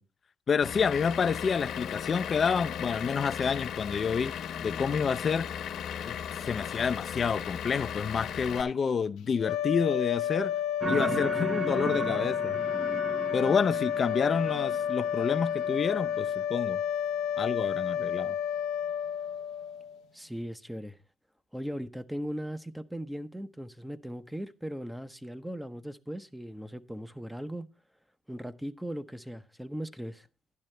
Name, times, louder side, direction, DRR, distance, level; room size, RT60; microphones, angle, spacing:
voice 1, 0.5-4.3 4.6-5.5 6.1-10.5 10.9-12.6 13.3-16.8 17.4-18.4, left 6 dB, 45° left, 0.4 m, -29 dB
Vehicle / Engine, 0.6-8.6, left 9 dB, 75° left, 1.1 m, -36 dB
sound 1, 9.4-20.0, left 9 dB, 90° left, 0.7 m, -31 dB
sound 2, 10.8-16.3, right 3 dB, 35° right, 0.6 m, -36 dB
voice 2, 20.1-21.0 21.5-27.7 28.3-30.3, equal, 5° right, 0.8 m, -38 dB
11.5 x 10.5 x 3.2 m
cardioid pair, 90°, 0 cm